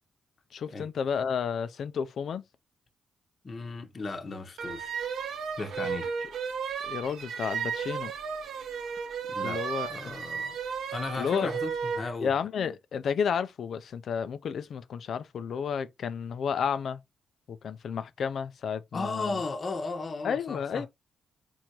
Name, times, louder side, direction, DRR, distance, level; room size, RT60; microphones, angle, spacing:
voice 1, 0.5-2.4 6.8-8.1 9.4-10.2 11.2-11.5 12.2-17.0 17.5-19.4 20.2-20.9, left 7 dB, 65° left, 0.5 m, -31 dB
voice 2, 3.4-5.0 5.6-6.1 9.3-9.6 9.9-10.6 10.9-12.3 18.9-20.9, left 3 dB, 45° left, 1.0 m, -35 dB
sound 1, 4.6-12.1, right 6 dB, 75° right, 1.0 m, -34 dB
4.6 x 3.5 x 3.0 m
cardioid pair, 70°, 0 cm